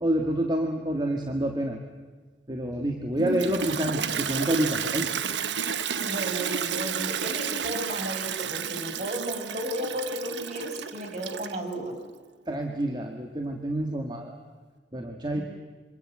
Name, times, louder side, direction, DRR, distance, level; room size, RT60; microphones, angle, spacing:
voice 1, 0.0-1.8 2.5-5.1 12.5-14.3 14.9-15.4, right 1 dB, 25° right, 3 dB, 1.9 m, -28 dB
Toilet flush, 3.2-11.7, right 7 dB, 90° right, 1.1 m, -31 dB
voice 2, 6.0-12.0 15.3-15.4, equal, 45° right, 3 dB, 6.0 m, -34 dB
27.0 x 25.5 x 7.7 m, 1.4 s
head